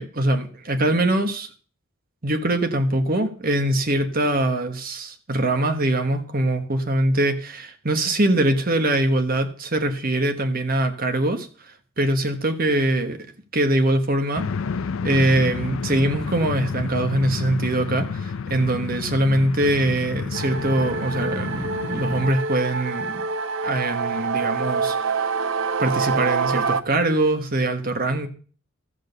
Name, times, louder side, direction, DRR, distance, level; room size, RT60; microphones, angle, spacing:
voice 1, 0.0-1.5 2.2-13.2 13.5-14.5 15.0-23.3 23.6-25.2 25.8-28.3, right 1 dB, 40° right, 8 dB, 1.3 m, -23 dB
sound 1, 14.3-22.3, left 5 dB, 65° left, 0.5 m, -30 dB
sound 2, 20.3-26.8, right 5 dB, 65° right, 0.6 m, -26 dB
14.0 x 6.4 x 6.7 m, 0.40 s
head